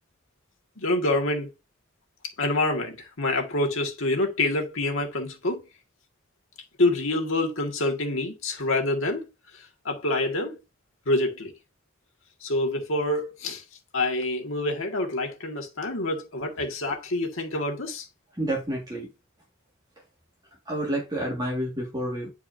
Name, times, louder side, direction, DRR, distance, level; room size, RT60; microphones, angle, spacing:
voice 1, 0.8-1.5 2.4-5.6 6.8-9.3 9.5-10.6 11.1-11.5 12.4-13.6 13.9-18.1, left 2 dB, 75° left, 1.8 m, -27 dB
voice 2, 18.3-19.1 20.7-22.3, right 1 dB, 20° right, 1.8 m, -29 dB
10.0 x 4.5 x 2.6 m
head